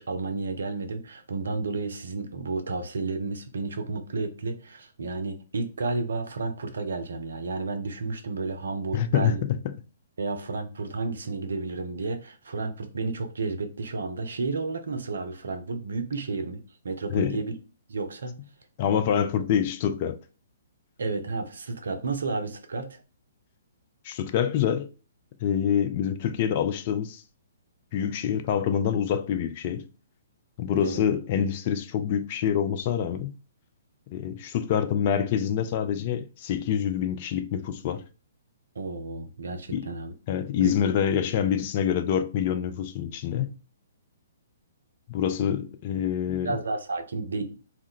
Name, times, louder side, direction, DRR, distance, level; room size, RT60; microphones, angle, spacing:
voice 1, 0.0-9.4 10.2-17.5 17.9-18.4 21.0-23.0 30.8-31.0 38.8-40.1 40.6-40.7 46.4-47.6, right 3 dB, 60° right, 0.5 m, -32 dB
voice 2, 8.9-9.4 9.6-9.7 17.1-17.4 18.8-20.2 24.0-24.9 25.4-27.2 27.9-29.8 30.6-33.3 34.1-38.0 39.7-39.9 40.3-43.5 45.1-46.6, left 8 dB, 35° left, 0.3 m, -26 dB
2.2 x 2.1 x 3.6 m
figure-of-eight pair, 120°, 0 cm